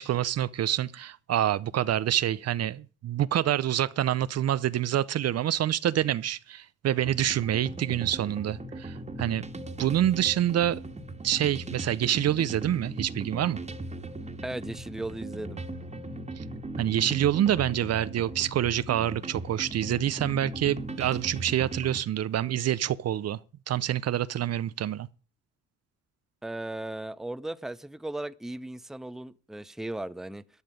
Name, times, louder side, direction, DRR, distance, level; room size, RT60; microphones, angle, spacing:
voice 1, 0.0-9.5 9.8-10.8 11.2-13.6 16.4-16.5 16.8-23.4 23.7-25.1, right 11 dB, 55° right, 0.6 m, -27 dB
sound 1, 7.0-22.0, right 2 dB, 20° right, 1.7 m, -38 dB
voice 2, 14.4-15.6 26.4-30.4, right 1 dB, ahead, 0.6 m, -36 dB
13.5 x 9.6 x 5.2 m
cardioid pair, 90°, 30 cm